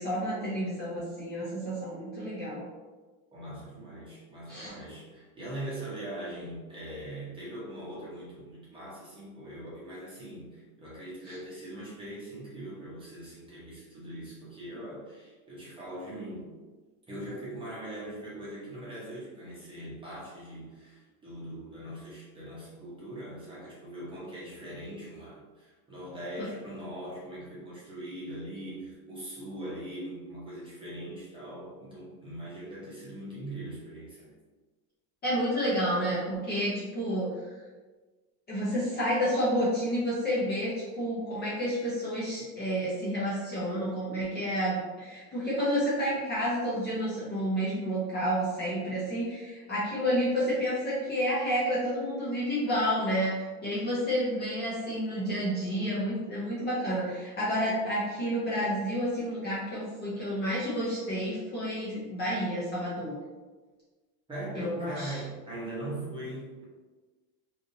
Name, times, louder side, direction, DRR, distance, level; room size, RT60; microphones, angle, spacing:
voice 1, 0.0-2.6 4.5-4.7 11.3-11.4 26.4-26.5 35.2-37.4 38.5-63.1 64.5-65.2, equal, 20° left, -8 dB, 0.8 m, -30 dB
voice 2, 3.3-16.5 17.1-34.3 64.3-66.6, right 1 dB, 10° right, -8 dB, 1.0 m, -41 dB
3.4 x 2.6 x 2.7 m, 1.3 s
supercardioid pair, 145°, 45 cm